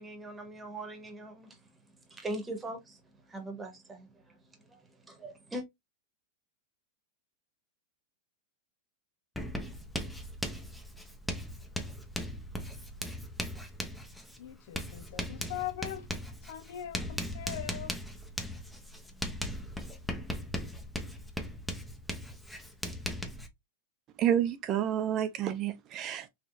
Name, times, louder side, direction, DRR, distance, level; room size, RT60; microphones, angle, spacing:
voice 1, 0.0-5.6, right 1 dB, 15° right, 1.2 m, -42 dB
Writing, 9.4-23.5, left 1 dB, 5° left, 0.7 m, -38 dB
voice 2, 14.4-16.1 16.5-18.0, left 12 dB, 70° left, 0.5 m, -40 dB
voice 3, 24.2-26.3, right 10 dB, 35° right, 0.5 m, -29 dB
3.5 x 3.2 x 2.6 m
supercardioid pair, 130°, 0 cm